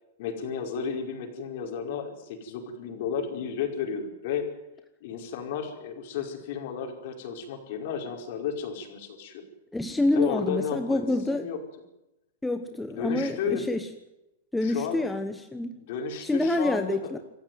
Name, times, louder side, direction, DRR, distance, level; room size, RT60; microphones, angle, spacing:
voice 1, 0.2-4.5 5.0-9.4 10.1-11.6 12.9-13.7 14.6-15.1 15.8-17.1, left 6 dB, 45° left, 4 dB, 5.0 m, -33 dB
voice 2, 9.7-11.5 12.4-13.9 14.5-15.8 16.2-17.2, left 2 dB, 5° left, 7 dB, 1.1 m, -27 dB
27.5 x 15.0 x 9.4 m, 0.94 s
supercardioid pair, 170°, 0 cm